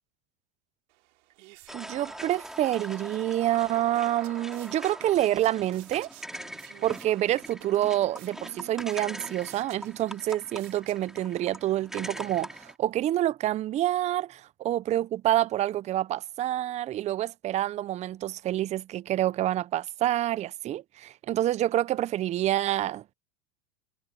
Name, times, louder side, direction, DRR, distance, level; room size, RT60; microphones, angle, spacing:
sound 1, 0.9-11.4, right 22 dB, 65° right, 4.6 m, -52 dB
sound 2, 1.7-12.8, equal, ahead, 4.0 m, -43 dB
voice 1, 1.7-6.1 6.8-23.1, right 13 dB, 20° right, 0.4 m, -27 dB
supercardioid pair, 125°, 40 cm